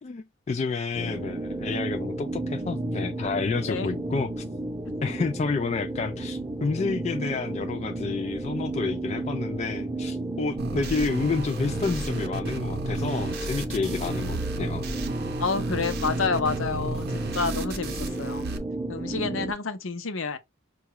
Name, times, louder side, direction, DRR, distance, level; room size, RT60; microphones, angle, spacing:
voice 1, 0.0-4.4 5.0-14.8, left 4 dB, 30° left, 0.3 m, -30 dB
sound 1, 0.9-19.5, right 2 dB, 20° right, 0.7 m, -33 dB
sound 2, 10.6-18.6, right 2 dB, 50° right, 0.6 m, -33 dB
voice 2, 15.4-18.5 18.9-20.4, left 4 dB, 65° left, 0.7 m, -29 dB
5.6 x 2.3 x 3.0 m
head